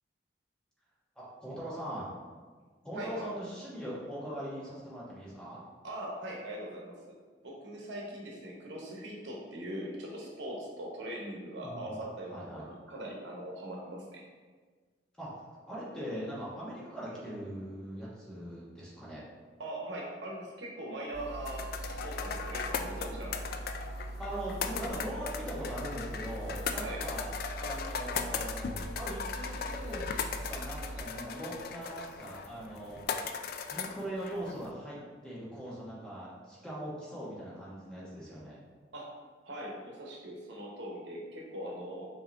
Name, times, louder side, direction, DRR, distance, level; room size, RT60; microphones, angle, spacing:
voice 1, 1.1-2.1 2.8-5.6 11.6-12.0 12.3-12.6 15.2-15.3 15.7-19.3 24.2-33.0 33.7-38.6, equal, 5° left, -8 dB, 1.2 m, -41 dB
voice 2, 5.8-7.1 7.4-14.2 19.6-23.4 26.8-27.0 38.9-39.1 39.4-42.1, right 1 dB, 80° right, -2 dB, 0.9 m, -41 dB
sound 1, 21.1-31.1, right 1 dB, 35° right, 0.4 m, -42 dB
sound 2, 21.5-34.7, left 6 dB, 55° left, 0.3 m, -38 dB
5.5 x 2.8 x 3.3 m, 1.5 s
head